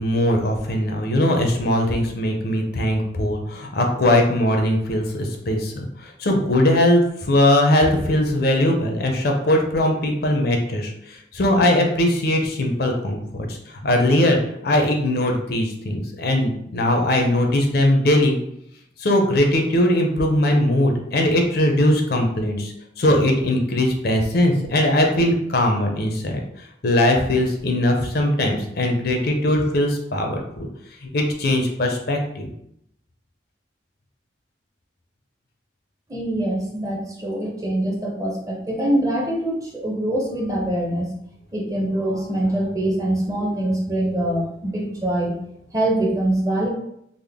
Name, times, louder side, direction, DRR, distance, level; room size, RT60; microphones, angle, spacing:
voice 1, 0.0-18.4 19.0-26.4 26.8-30.7 31.0-32.5, left 1 dB, 55° left, 2 dB, 0.5 m, -20 dB
voice 2, 36.1-41.1 41.5-45.3 45.7-46.7, right 1 dB, 20° right, -2 dB, 0.6 m, -24 dB
3.5 x 2.0 x 3.4 m, 0.74 s
head